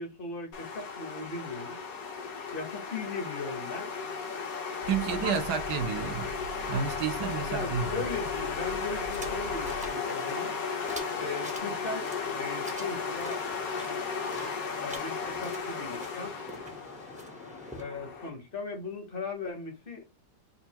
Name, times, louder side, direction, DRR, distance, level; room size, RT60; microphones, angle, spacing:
voice 1, 0.0-1.8 2.5-3.9 5.1-5.4 7.5-10.5 11.1-13.4 14.8-16.4 17.8-20.1, left 3 dB, 35° left, 1.0 m, -38 dB
sound 1, 0.5-18.3, left 5 dB, 55° left, 1.3 m, -35 dB
sound 2, 4.8-9.9, right 2 dB, 75° left, 1.1 m, -43 dB
voice 2, 4.9-6.3 6.7-8.0, right 7 dB, 70° right, 1.2 m, -30 dB
sound 3, 9.1-17.8, right 1 dB, 5° right, 0.6 m, -46 dB
5.5 x 2.6 x 2.8 m
omnidirectional pair, 2.0 m